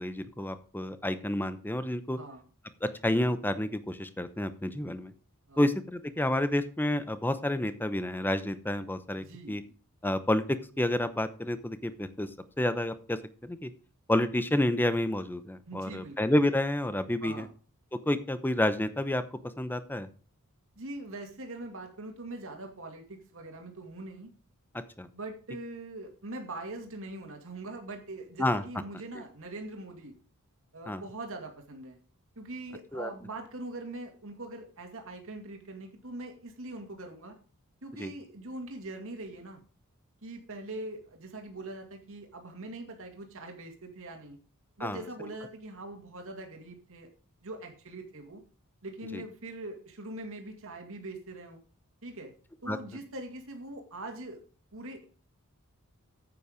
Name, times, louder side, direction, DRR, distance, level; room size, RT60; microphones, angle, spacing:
voice 1, 0.0-2.2 2.8-5.1 5.6-9.6 10.0-12.3 12.6-13.7 14.1-17.5 18.1-19.2 19.6-20.1 25.0-25.1 28.4-28.6 30.9-31.0 32.9-33.1 38.0-38.1 44.8-45.0 49.1-49.2 52.7-52.8, left 1 dB, 10° left, 12 dB, 0.8 m, -29 dB
voice 2, 9.1-9.6 15.7-16.3 17.2-17.5 20.8-24.3 25.1-30.1 30.7-32.0 32.4-37.4 37.8-39.6 40.2-44.4 44.8-47.1 47.4-48.4 48.8-51.6 52.0-52.3 52.6-54.4 54.7-55.0, right 2 dB, 65° right, 3 dB, 2.2 m, -42 dB
9.3 x 8.4 x 5.1 m, 0.39 s
head